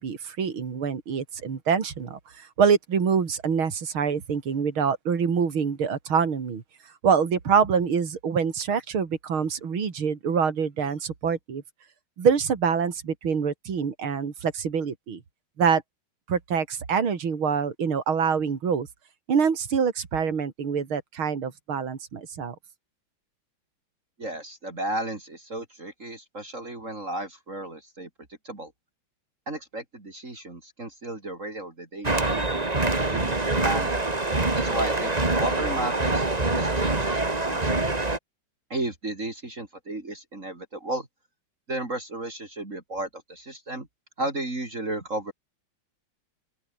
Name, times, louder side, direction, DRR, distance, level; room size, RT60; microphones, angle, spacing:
voice 1, 0.0-6.6 7.0-11.6 12.2-15.2 15.6-15.8 16.3-18.9 19.3-22.5, right 6 dB, 75° right, 3.4 m, -25 dB
voice 2, 24.2-28.1 28.4-28.7 29.5-32.6 33.1-34.0 34.5-36.3 36.5-37.8 38.7-41.1 41.7-43.9 44.2-45.3, right 1 dB, 35° right, 4.2 m, -33 dB
sound 1, 32.0-38.2, right 2 dB, 20° right, 2.3 m, -25 dB
open air
omnidirectional pair, 2.3 m